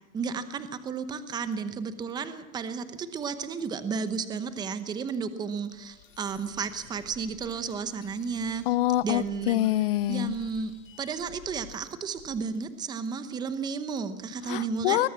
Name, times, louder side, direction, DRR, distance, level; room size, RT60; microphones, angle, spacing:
voice 1, 0.1-8.7 9.0-9.6 10.1-10.7 11.0-15.0, right 5 dB, 10° right, 11 dB, 0.9 m, -33 dB
sound 1, 5.7-12.5, left 9 dB, 65° left, 4.8 m, -53 dB
voice 2, 8.7-10.3 14.5-15.1, left 15 dB, 40° left, 20 dB, 0.7 m, -25 dB
21.5 x 19.0 x 7.4 m, 0.95 s
hypercardioid pair, 150°, 42 cm